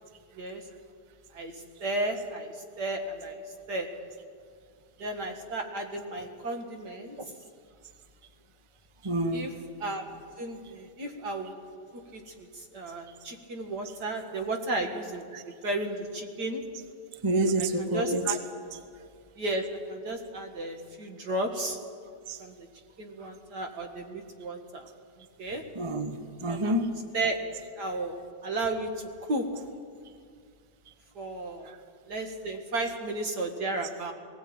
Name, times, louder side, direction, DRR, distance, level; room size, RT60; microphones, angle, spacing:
voice 1, 1.3-3.4 3.7-3.9 5.0-7.2 9.3-9.5 9.8-10.0 10.4-11.6 12.1-15.2 15.6-16.6 17.8-18.4 19.4-21.8 22.4-22.5 23.0-24.9 25.4-25.6 26.5-26.7 27.1-27.4 27.8-28.9 29.3-29.6 31.2-31.7 32.1-34.1, right 2 dB, 75° right, 4 dB, 2.5 m, -33 dB
voice 2, 9.0-9.5 15.3-15.4 17.2-18.4 22.3-22.4 23.2-23.3 25.7-27.0 31.6-31.8, right 1 dB, 20° right, 8 dB, 0.9 m, -28 dB
19.0 x 17.5 x 8.8 m, 2.1 s
omnidirectional pair, 1.8 m